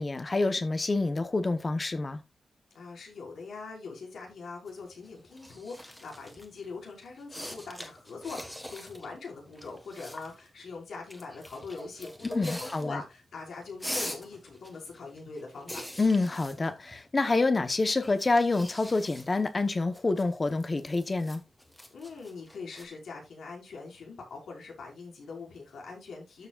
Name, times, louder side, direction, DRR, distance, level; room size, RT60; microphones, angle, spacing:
voice 1, 0.0-2.2 12.3-13.0 16.0-21.4, left 3 dB, 25° left, 0.9 m, -27 dB
voice 2, 2.7-15.8 21.9-26.5, left 4 dB, 80° left, 4.9 m, -42 dB
sound 1, 4.7-6.5 7.1-9.1 9.3-10.5 11.1-13.1 13.4-17.4 17.8-22.8, equal, 5° left, 1.4 m, -43 dB
13.0 x 6.9 x 2.4 m
wide cardioid pair, 165°, 0 cm